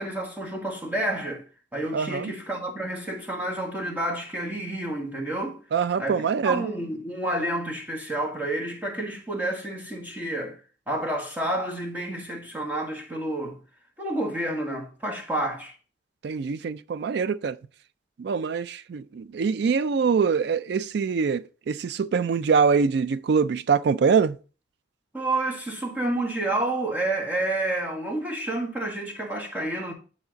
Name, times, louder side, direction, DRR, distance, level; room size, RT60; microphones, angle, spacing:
voice 1, 0.0-1.4 1.7-5.6 6.0-10.6 10.9-13.6 14.0-15.7 25.1-29.9, right 1 dB, 10° right, 1.7 m, -29 dB
voice 2, 1.9-2.3 5.7-6.6 16.2-17.6 18.2-24.4, right 5 dB, 60° right, 0.3 m, -24 dB
9.7 x 4.2 x 3.9 m
head